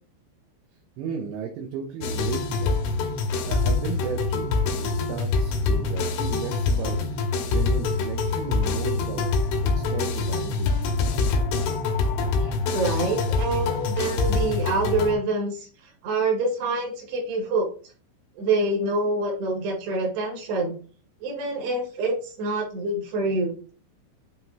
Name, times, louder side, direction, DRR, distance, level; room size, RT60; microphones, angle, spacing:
voice 1, 1.0-2.7 3.5-7.0 7.5-9.3 9.6-10.8, right 7 dB, 80° right, 2 dB, 3.1 m, -35 dB
sound 1, 2.0-15.2, left 3 dB, 85° left, 3.4 m, -25 dB
voice 2, 12.4-15.7 16.0-17.7 18.4-20.7 21.2-23.5, right 2 dB, 60° right, -1 dB, 3.8 m, -26 dB
9.0 x 3.7 x 2.9 m, 0.39 s
omnidirectional pair, 5.6 m